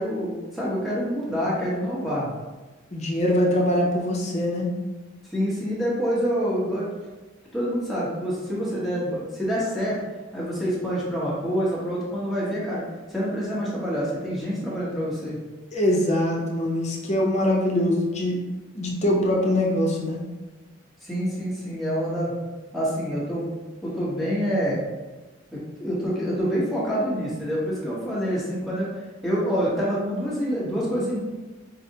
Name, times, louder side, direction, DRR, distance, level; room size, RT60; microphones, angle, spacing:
voice 1, 0.0-2.3 5.3-6.9 7.5-10.0 10.3-12.8 13.1-15.4 21.0-22.3 22.7-23.5 23.8-24.8 25.5-28.9 29.2-31.2, equal, ahead, -8 dB, 0.9 m, -26 dB
voice 2, 2.9-4.7 15.7-18.4 18.7-20.2, left 1 dB, 35° left, -2 dB, 0.6 m, -23 dB
4.8 x 2.0 x 2.7 m, 1.2 s
head